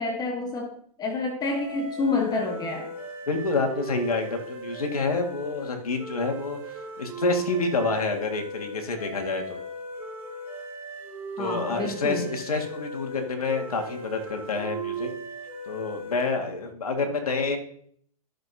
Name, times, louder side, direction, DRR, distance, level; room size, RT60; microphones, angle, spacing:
voice 1, 0.0-2.9 11.4-12.3, left 3 dB, 20° left, 4 dB, 1.2 m, -28 dB
sound 1, 1.4-16.5, right 2 dB, 10° right, 3.2 m, -38 dB
voice 2, 3.3-9.6 11.4-15.1 15.7-17.6, left 3 dB, 75° left, 3 dB, 1.9 m, -28 dB
13.5 x 6.6 x 2.8 m, 0.62 s
hypercardioid pair, 115°, 19 cm